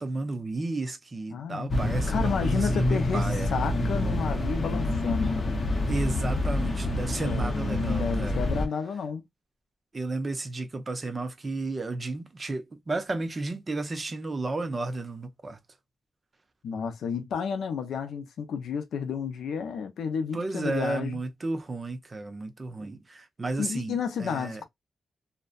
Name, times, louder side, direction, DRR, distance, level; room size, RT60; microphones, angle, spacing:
voice 1, 0.0-3.5 5.9-8.4 9.9-15.6 20.3-24.6, right 2 dB, 30° right, 0.5 m, -33 dB
voice 2, 1.3-1.7 2.1-5.5 7.2-9.3 16.6-21.2 23.6-24.7, left 6 dB, 85° left, 0.5 m, -31 dB
sound 1, 1.7-8.7, left 1 dB, 35° left, 0.6 m, -27 dB
2.6 x 2.1 x 2.3 m
wide cardioid pair, 120°, 0 cm